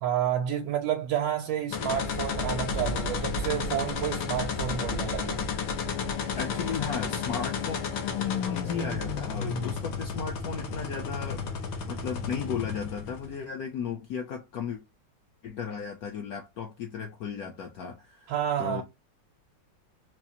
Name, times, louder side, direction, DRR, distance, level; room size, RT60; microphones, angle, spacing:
voice 1, 0.0-5.5 18.3-18.8, right 10 dB, 80° right, 1.3 m, -30 dB
sound 1, 1.7-13.4, left 5 dB, 90° left, 1.5 m, -32 dB
voice 2, 6.3-7.8 8.4-11.4 11.9-14.8 15.4-18.3 18.6-18.8, left 7 dB, 70° left, 0.9 m, -35 dB
4.2 x 2.4 x 2.7 m
omnidirectional pair, 2.0 m